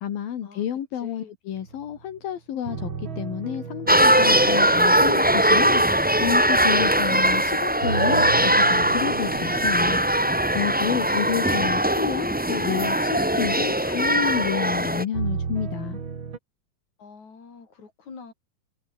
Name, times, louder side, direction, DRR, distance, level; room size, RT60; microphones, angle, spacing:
voice 1, 0.0-5.8 6.2-10.0 10.6-16.0, left 9 dB, 75° left, 4.0 m, -30 dB
voice 2, 0.9-1.3 17.0-18.3, left 5 dB, 50° left, 6.4 m, -45 dB
sound 1, 1.5-2.2 2.6-7.2 7.8-13.5 15.1-16.4, right 6 dB, 35° right, 2.8 m, -36 dB
sound 2, 3.9-15.0, right 1 dB, 10° right, 0.4 m, -20 dB
omnidirectional pair, 4.2 m